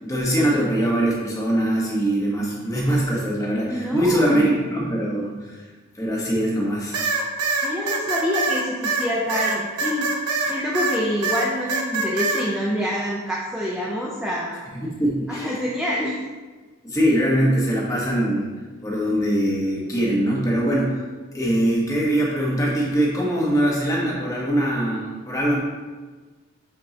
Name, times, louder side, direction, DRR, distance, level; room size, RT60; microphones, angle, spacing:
voice 1, 0.0-5.6 5.9-7.0 14.7-15.5 16.8-18.5 18.8-21.0 21.3-25.6, right 1 dB, 15° left, -4 dB, 1.2 m, -22 dB
voice 2, 3.7-4.6 7.6-10.2 10.5-14.6 15.3-16.2, equal, 5° right, -4 dB, 0.5 m, -26 dB
sound 1, 6.9-11.0 11.2-12.4, right 3 dB, 90° right, 0.9 m, -24 dB
8.4 x 4.6 x 2.9 m, 1.3 s
head